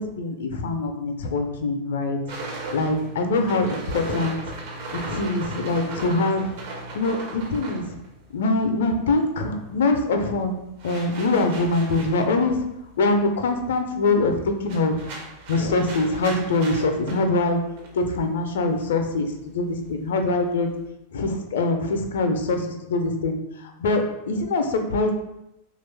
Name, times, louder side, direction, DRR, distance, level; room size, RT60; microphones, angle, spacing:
voice 1, 0.0-4.6 5.1-6.5 6.9-8.0 8.3-12.6 13.0-15.1 15.5-17.6 17.9-20.7 21.1-25.1, left 2 dB, 60° left, 5 dB, 0.4 m, -24 dB
sound 1, 2.3-9.0 9.2-20.9, right 2 dB, 50° right, 0.6 m, -38 dB
3.0 x 2.3 x 3.2 m, 0.88 s
figure-of-eight pair, 90°, 0 cm